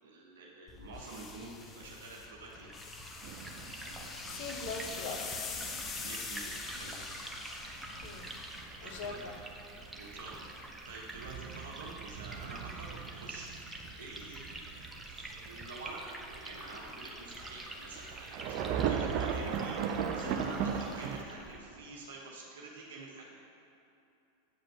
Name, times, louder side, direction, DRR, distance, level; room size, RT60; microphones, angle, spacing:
voice 1, 0.0-2.7 6.0-6.9 8.8-9.2 10.0-10.4 10.9-13.5 14.0-23.4, right 3 dB, 70° right, -3 dB, 1.2 m, -48 dB
sound 1, 0.7-9.3, left 4 dB, 25° left, 0.8 m, -45 dB
Liquid, 2.5-21.6, right 1 dB, 10° right, 1.1 m, -47 dB
sound 2, 3.2-21.2, right 7 dB, 50° right, 0.6 m, -40 dB
voice 2, 4.3-5.7 8.0-8.3 8.8-9.3, left 4 dB, 55° left, 3 dB, 1.0 m, -41 dB
8.5 x 5.2 x 6.6 m, 2.8 s
figure-of-eight pair, 90°, 0 cm